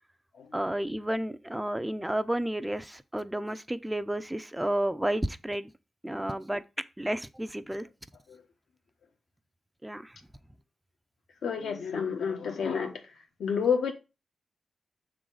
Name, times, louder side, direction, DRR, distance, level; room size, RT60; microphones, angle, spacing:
voice 1, 0.5-5.7 6.0-6.6 7.0-7.9 9.8-10.1, right 1 dB, 10° right, 0.6 m, -31 dB
voice 2, 11.4-13.0 13.4-13.9, left 6 dB, 90° left, 1.3 m, -29 dB
6.7 x 3.9 x 4.8 m
cardioid pair, 70°, 0 cm